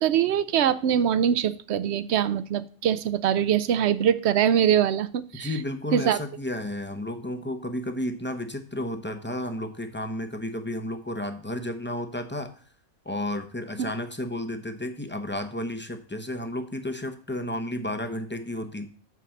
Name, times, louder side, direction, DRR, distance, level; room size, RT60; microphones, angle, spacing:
voice 1, 0.0-5.5 5.9-6.2, right 9 dB, 65° right, 15 dB, 0.8 m, -23 dB
voice 2, 5.3-12.5 13.0-18.9, left 1 dB, 10° left, 7 dB, 0.6 m, -32 dB
6.2 x 5.8 x 7.0 m, 0.43 s
omnidirectional pair, 1.3 m